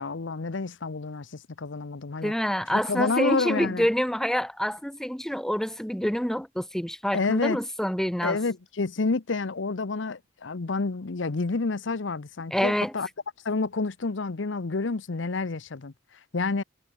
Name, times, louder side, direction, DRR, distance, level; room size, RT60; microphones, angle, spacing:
voice 1, 0.0-2.3 2.7-3.9 7.1-7.6 8.2-13.1 13.4-15.9 16.3-16.6, left 3 dB, 80° left, 0.8 m, -29 dB
voice 2, 2.2-8.4 12.5-12.9, equal, 5° left, 0.9 m, -27 dB
head